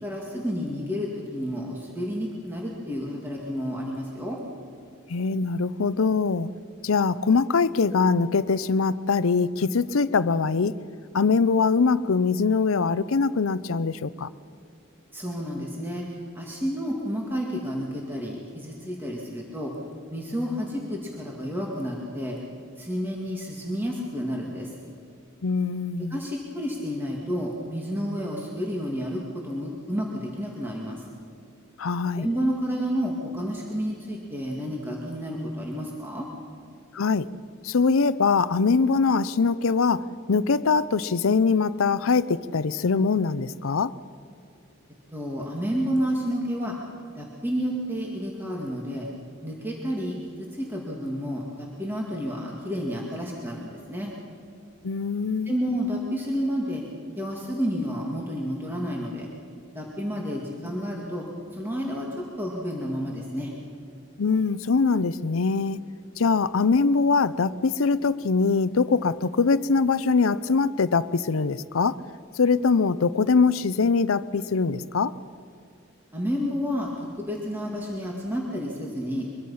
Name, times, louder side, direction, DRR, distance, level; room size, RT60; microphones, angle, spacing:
voice 1, 0.0-4.4 15.1-19.7 20.1-22.4 22.8-24.7 26.1-31.0 32.1-36.3 45.1-46.7 47.2-49.1 49.4-54.1 55.5-56.8 57.2-59.3 59.7-61.2 61.5-62.1 62.4-63.5 76.1-79.3, equal, 10° right, -2 dB, 2.1 m, -30 dB
voice 2, 5.1-6.5 6.8-10.8 11.1-14.3 25.4-26.2 31.8-32.3 36.9-37.3 37.6-43.9 54.8-55.6 64.2-65.8 66.2-72.0 72.3-75.1, left 4 dB, 85° left, 16 dB, 0.6 m, -23 dB
23.0 x 23.0 x 5.7 m, 2.4 s
head